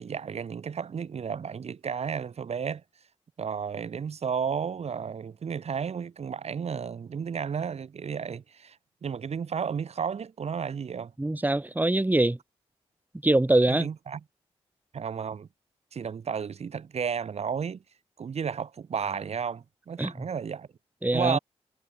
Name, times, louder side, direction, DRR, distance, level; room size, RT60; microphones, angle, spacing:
voice 1, 0.0-2.8 3.4-8.8 9.0-11.1 13.7-14.2 14.9-15.5 15.9-17.8 18.2-20.7 21.1-21.4, right 6 dB, 60° right, 1.6 m, -32 dB
voice 2, 11.2-12.4 13.2-13.9 20.0-20.1 21.0-21.4, right 2 dB, 15° right, 1.5 m, -23 dB
supercardioid pair, 50°, 12 cm